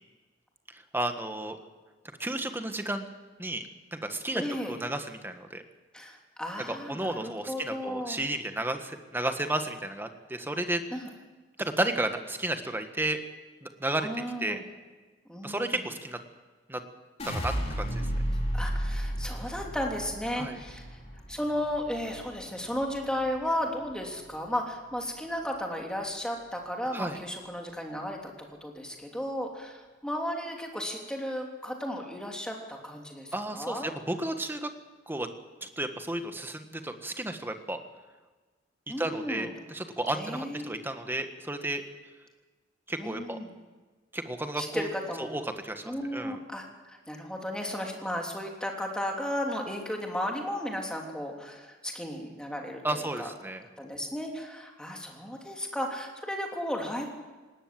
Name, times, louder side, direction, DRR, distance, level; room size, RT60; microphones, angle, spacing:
voice 1, 0.7-1.6 2.2-3.0 3.4-5.6 6.7-10.8 11.6-13.2 13.6-14.1 14.4-14.6 15.4-16.2 16.7-16.8 17.2-18.1 20.4-20.6 26.9-27.2 33.3-34.7 35.1-35.3 35.6-37.8 39.0-41.8 42.9-43.4 44.1-44.9 45.2-45.8 46.1-46.4 52.8-53.6, right 1 dB, 10° right, 7 dB, 1.5 m, -33 dB
voice 2, 4.3-4.8 5.9-8.2 10.9-11.1 14.0-14.6 15.3-15.8 18.5-21.0 21.3-28.3 28.6-33.9 38.9-39.5 40.1-40.8 43.0-43.5 44.6-45.3 45.8-53.3 53.8-57.1, equal, 5° left, 1 dB, 3.1 m, -34 dB
sound 1, 17.2-23.4 23.7-24.3, equal, 35° left, 4.0 m, -33 dB
19.5 x 18.0 x 7.7 m, 1.3 s
head